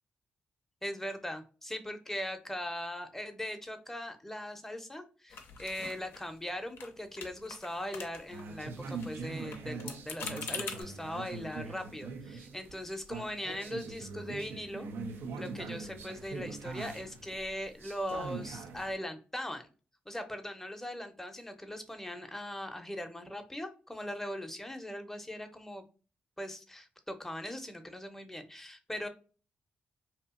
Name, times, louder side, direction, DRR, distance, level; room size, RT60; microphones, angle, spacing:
voice 1, 0.8-14.9 15.4-19.7 20.1-25.8 26.4-29.1, left 1 dB, 10° left, 7 dB, 0.6 m, -40 dB
sound 1, 5.3-6.5 6.8-6.9 7.2-8.4 8.7-10.8, left 5 dB, 80° left, 0.5 m, -43 dB
sound 2, 8.3-18.9, right 4 dB, 85° right, 0.3 m, -42 dB
2.7 x 2.4 x 2.4 m, 0.36 s
cardioid pair, 65°, 4 cm